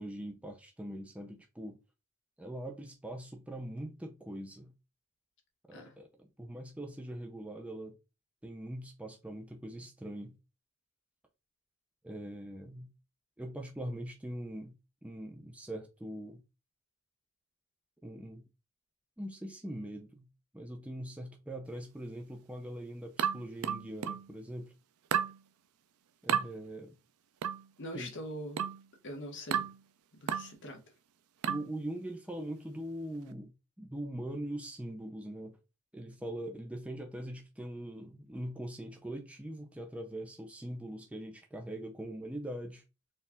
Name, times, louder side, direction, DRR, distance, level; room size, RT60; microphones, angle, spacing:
voice 1, 0.0-1.8 2.4-4.7 5.7-7.9 8.4-10.4 12.0-12.9 13.4-14.7 15.0-16.4 18.0-18.4 19.2-20.3 20.5-24.7 26.2-26.9 27.9-28.1 31.5-33.5 33.8-35.6 35.9-42.8, right 1 dB, 5° right, 0.5 m, -42 dB
sound 1, 23.2-24.3 25.1-25.4 26.3-26.5 27.4-27.7 28.6-28.9 29.5-29.8 30.3-30.6 31.4-31.7, right 8 dB, 85° right, 0.4 m, -32 dB
voice 2, 27.8-28.6 29.0-29.7 30.2-30.8, equal, 55° left, 1.2 m, -42 dB
4.4 x 2.4 x 3.4 m
head